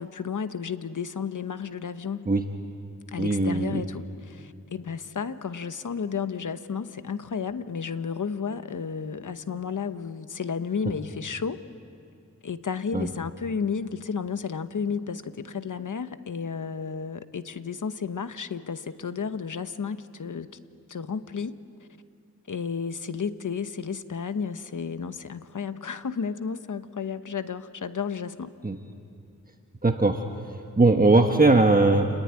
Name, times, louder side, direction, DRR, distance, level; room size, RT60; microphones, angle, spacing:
voice 1, 0.0-2.3 3.1-11.6 12.4-20.5 20.9-21.6 22.5-28.5, left 6 dB, 70° left, 11 dB, 1.1 m, -32 dB
voice 2, 3.2-3.8 12.9-13.1 28.6-28.8 29.8-30.2 30.8-32.1, right 2 dB, 25° right, 4 dB, 1.3 m, -20 dB
28.5 x 20.5 x 9.7 m, 2.5 s
wide cardioid pair, 85°, 32 cm